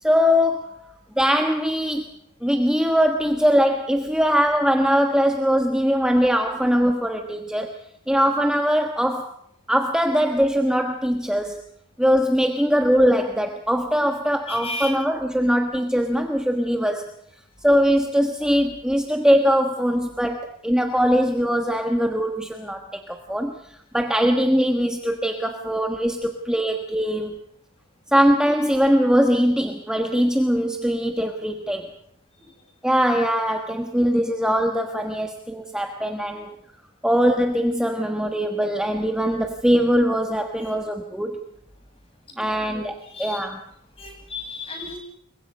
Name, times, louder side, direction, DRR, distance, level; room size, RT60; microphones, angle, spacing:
voice 1, 0.0-0.9 1.2-2.1 2.4-7.8 8.1-9.3 9.7-11.6 12.0-17.1 17.6-27.4 28.1-31.9 32.8-36.5 37.0-41.4 42.4-43.6, equal, 5° right, 4 dB, 1.3 m, -21 dB
voice 2, 14.5-15.0 32.4-32.5 40.6-40.7 42.3-42.7 43.0-43.5 44.0-45.0, left 2 dB, 25° left, 2 dB, 7.6 m, -35 dB
29.0 x 23.0 x 5.4 m, 0.69 s
head